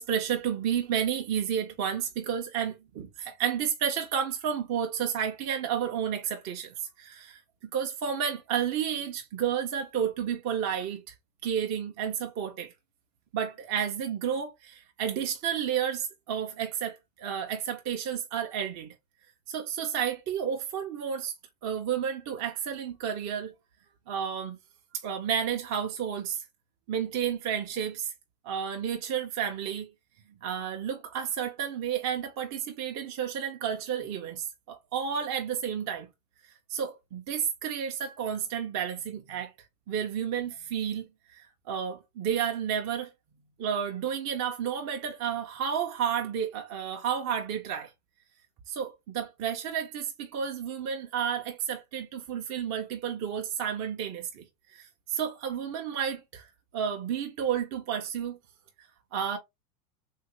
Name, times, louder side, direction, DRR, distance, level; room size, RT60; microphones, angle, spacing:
voice 1, 0.0-11.1 11.4-12.7 13.3-18.9 19.5-21.3 21.6-23.5 24.1-24.6 25.0-26.4 26.9-28.1 28.4-29.9 30.4-36.1 36.7-39.5 39.9-43.1 43.6-47.9 48.7-54.4 54.7-56.5 56.7-58.4 58.8-59.4, right 8 dB, 35° right, 0.8 m, -31 dB
3.6 x 2.7 x 3.0 m
hypercardioid pair, 100°, 49 cm